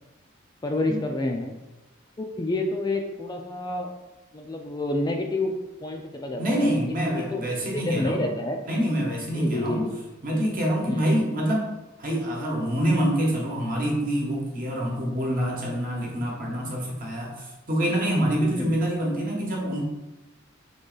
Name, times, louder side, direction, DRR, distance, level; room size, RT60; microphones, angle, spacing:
voice 1, 0.6-1.6 2.2-3.9 4.3-5.5 5.8-8.6 9.3-10.0 10.9-11.1 18.6-18.7, left 2 dB, 20° left, 2 dB, 0.3 m, -29 dB
voice 2, 6.4-8.3 8.6-9.9 10.2-11.7 12.0-19.8, equal, 45° right, -2 dB, 1.1 m, -26 dB
3.8 x 3.1 x 3.9 m, 1.0 s
head